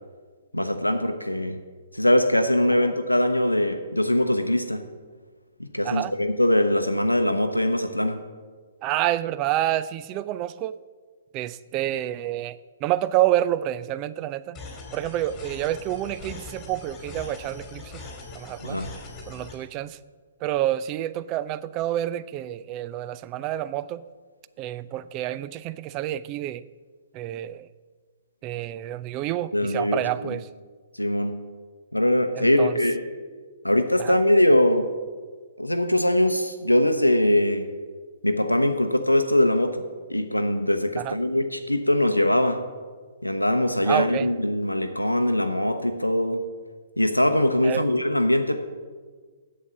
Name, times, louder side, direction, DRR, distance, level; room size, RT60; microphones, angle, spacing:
voice 1, 0.5-1.6 1.9-4.8 5.6-8.2 18.6-18.9 29.5-30.3 30.9-31.4 31.9-33.0 33.6-34.9 35.6-37.7 38.2-39.8 40.1-42.6 43.2-46.4 47.0-48.6, left 1 dB, 90° left, 7 dB, 0.7 m, -22 dB
voice 2, 8.8-10.7 11.3-14.6 14.9-18.0 18.3-18.8 19.3-20.0 20.4-24.0 24.6-26.6 27.1-27.7 28.4-30.5 32.3-32.8 34.0-34.2 41.0-41.2 43.9-44.3 47.6-47.9, right 13 dB, 30° right, 15 dB, 0.3 m, -28 dB
sound 1, 14.5-19.5, left 3 dB, 15° left, 2.4 m, -41 dB
8.2 x 7.5 x 7.0 m, 1.5 s
figure-of-eight pair, 120°, 0 cm